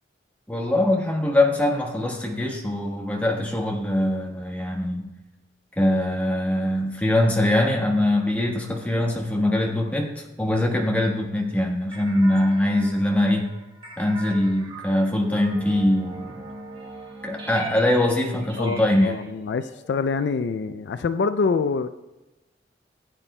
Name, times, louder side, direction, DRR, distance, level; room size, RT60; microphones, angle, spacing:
voice 1, 0.5-5.1 5.8-13.5 14.0-16.4 17.2-19.2, left 1 dB, 10° left, 0 dB, 1.3 m, -22 dB
sound 1, 11.9-20.8, right 2 dB, 30° right, 1.4 m, -42 dB
voice 2, 18.5-21.9, left 4 dB, 70° left, 11 dB, 0.3 m, -25 dB
16.5 x 8.8 x 2.2 m, 1.0 s
head